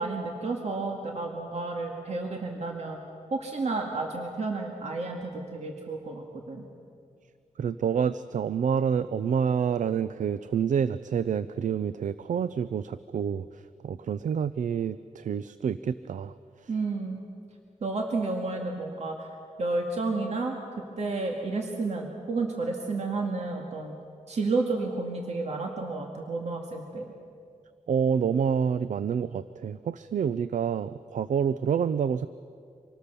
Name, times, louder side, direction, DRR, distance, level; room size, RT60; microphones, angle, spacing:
voice 1, 0.0-3.0 3.3-6.6 16.7-17.2 17.8-19.3 19.6-20.6 21.0-23.9 24.3-27.1, right 3 dB, 55° right, 1 dB, 2.1 m, -31 dB
voice 2, 7.6-16.3 27.9-32.3, right 7 dB, 75° right, 14 dB, 0.5 m, -28 dB
25.5 x 18.5 x 6.9 m, 2.3 s
wide cardioid pair, 125°, 13 cm